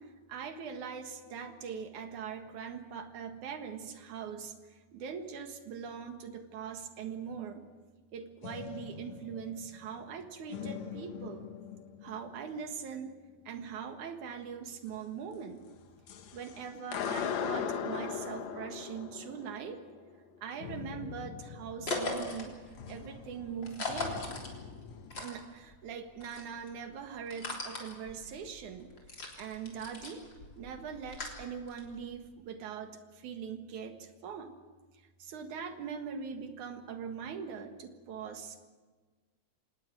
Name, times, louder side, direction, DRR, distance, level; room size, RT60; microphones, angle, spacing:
voice 1, 0.0-7.7 8.1-11.5 12.0-13.2 13.5-15.6 16.3-19.8 20.4-22.6 22.9-24.3 25.2-28.9 29.4-30.2 30.6-34.5 35.2-38.6, right 6 dB, 80° right, 6 dB, 3.1 m, -42 dB
sound 1, 8.4-10.2 10.5-12.6 15.8-25.3, left 7 dB, 65° left, 2.5 m, -41 dB
sound 2, 21.8-25.8 26.1-32.1, left 3 dB, 40° left, 4.1 m, -40 dB
25.5 x 19.0 x 7.7 m, 1.4 s
omnidirectional pair, 3.4 m